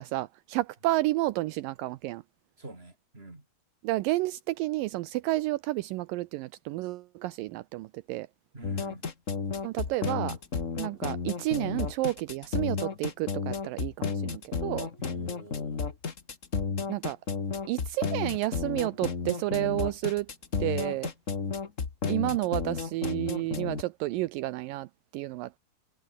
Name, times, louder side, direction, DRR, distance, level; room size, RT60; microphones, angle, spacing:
voice 1, 0.0-2.2 3.8-8.3 9.6-10.4 10.8-14.9 16.9-17.2 17.7-20.3 20.6-21.1 22.1-25.6, right 18 dB, 85° right, 2.1 m, -31 dB
voice 2, 2.6-3.4 8.5-9.0 15.0-15.8, right 2 dB, 15° right, 4.8 m, -47 dB
sound 1, 8.6-23.8, left 5 dB, 60° left, 0.7 m, -32 dB
omnidirectional pair, 4.5 m